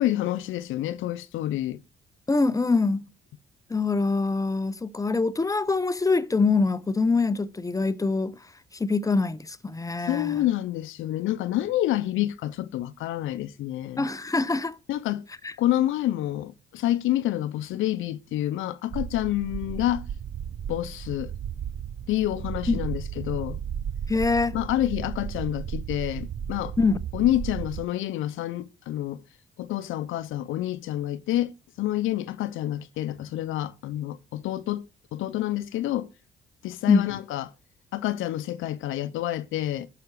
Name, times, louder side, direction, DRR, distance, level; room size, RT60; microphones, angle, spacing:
voice 1, 0.0-1.8 10.0-14.1 14.9-15.2 15.6-20.0 20.7-21.3 22.1-23.6 24.5-26.7 27.1-29.2 29.6-34.8 35.1-36.1 36.6-37.5 37.9-39.9, left 14 dB, 85° left, 0.6 m, -28 dB
voice 2, 2.3-3.1 3.7-8.4 8.7-10.4 14.0-14.8 15.4-15.5 22.7-22.8 24.1-24.6 26.8-27.0 36.9-37.1, left 3 dB, 15° left, 0.6 m, -24 dB
sound 1, 18.9-27.8, right 8 dB, 40° right, 0.5 m, -34 dB
11.0 x 5.7 x 4.7 m
cardioid pair, 90°, 20 cm